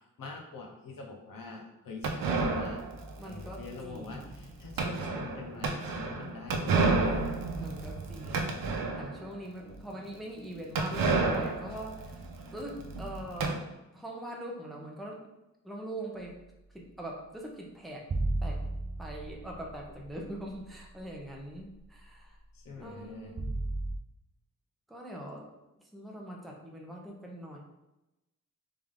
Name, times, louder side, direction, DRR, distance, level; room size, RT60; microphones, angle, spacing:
voice 1, 0.2-2.9 3.3-7.3 22.5-23.4, left 3 dB, 80° left, 2 dB, 0.9 m, -44 dB
sound 1, 2.0-9.3 9.7-9.8 10.0-10.1 10.7-13.5, right 3 dB, 90° right, 0.7 m, -31 dB
voice 2, 3.2-4.5 7.6-12.2 12.5-13.6 13.9-15.2 15.6-16.4 16.7-18.1 18.4-18.6 19.0-22.4 22.8-23.5 24.9-25.5 25.9-27.6, right 1 dB, ahead, -1 dB, 0.7 m, -42 dB
sound 2, 18.1-20.9 21.3-21.4 23.4-24.0, right 2 dB, 30° right, 0.4 m, -34 dB
3.7 x 3.4 x 3.5 m, 0.93 s
wide cardioid pair, 130°, 33 cm